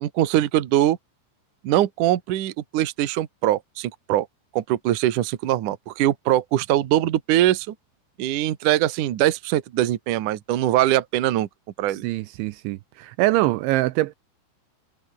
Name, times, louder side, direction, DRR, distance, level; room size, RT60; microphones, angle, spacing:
voice 1, 0.0-1.0 1.6-4.3 4.5-7.7 8.2-11.5 11.8-12.0, right 13 dB, 60° right, 2.2 m, -22 dB
voice 2, 11.9-14.1, right 18 dB, 80° right, 2.9 m, -24 dB
omnidirectional pair, 5.6 m